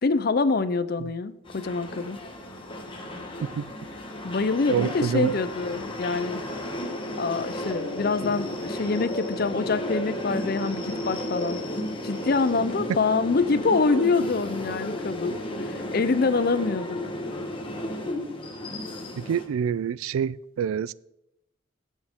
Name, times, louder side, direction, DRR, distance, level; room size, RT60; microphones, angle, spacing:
voice 1, 0.0-2.2 4.2-6.4 7.2-11.6 12.0-17.0, left 4 dB, 45° left, 0.5 m, -25 dB
sound 1, 1.5-19.5, left 1 dB, 25° left, 1.2 m, -33 dB
voice 2, 4.7-5.3 19.2-20.9, right 7 dB, 90° right, 0.3 m, -27 dB
15.0 x 7.3 x 3.6 m
head